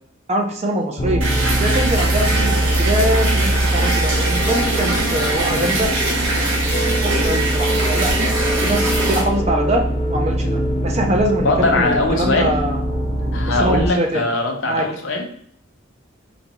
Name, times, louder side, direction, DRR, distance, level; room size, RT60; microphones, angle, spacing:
voice 1, 0.3-1.2 1.6-5.9 6.3-6.5 7.0-12.8 13.5-14.2 14.6-14.9, right 1 dB, 35° right, 3 dB, 0.5 m, -23 dB
sound 1, 1.0-13.9, right 1 dB, 25° left, 0.4 m, -22 dB
sound 2, 1.2-9.2, right 2 dB, 75° right, 0.9 m, -23 dB
voice 2, 11.4-12.6 13.3-15.3, left 2 dB, 70° left, 3 dB, 0.7 m, -20 dB
4.0 x 2.3 x 2.9 m, 0.65 s
head